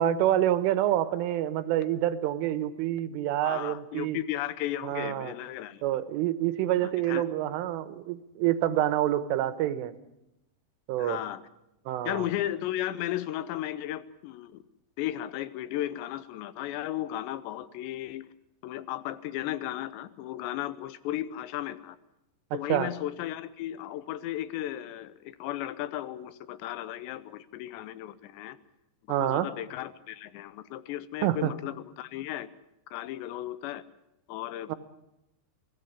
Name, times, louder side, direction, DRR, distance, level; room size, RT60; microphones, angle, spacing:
voice 1, 0.0-4.2 4.8-5.3 5.8-9.9 10.9-11.2 11.9-12.3 22.5-22.9 29.1-29.5 31.2-31.5 34.7-34.8, right 12 dB, 85° right, 12 dB, 3.6 m, -27 dB
voice 2, 3.4-5.8 6.8-7.2 11.0-11.4 12.1-14.6 15.0-18.3 18.6-22.0 22.5-28.6 29.2-32.5 32.9-33.8 34.3-34.8, left 13 dB, 75° left, 15 dB, 2.8 m, -35 dB
24.5 x 16.5 x 8.2 m, 0.89 s
omnidirectional pair, 5.6 m